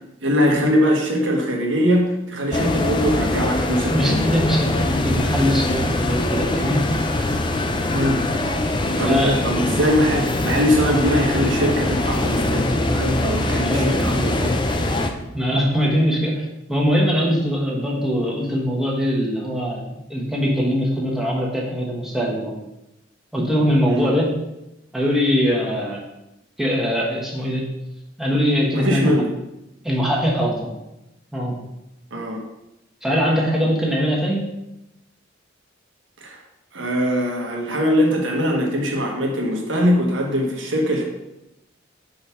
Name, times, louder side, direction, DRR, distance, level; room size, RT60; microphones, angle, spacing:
voice 1, 0.2-4.3 7.9-8.2 9.0-14.5 23.9-24.1 28.7-29.3 32.1-32.4 36.2-36.4 36.7-41.0, equal, 80° right, 0 dB, 1.4 m, -21 dB
sound 1, 2.5-15.1, left 1 dB, 25° left, 0.5 m, -22 dB
voice 2, 3.9-6.9 9.0-9.4 13.6-14.0 15.3-19.8 20.1-22.5 23.3-24.3 24.9-26.0 26.6-27.6 28.2-29.1 29.8-30.7 31.3-31.6 33.0-34.4, equal, ahead, -4 dB, 1.2 m, -21 dB
5.3 x 4.0 x 5.7 m, 0.90 s
head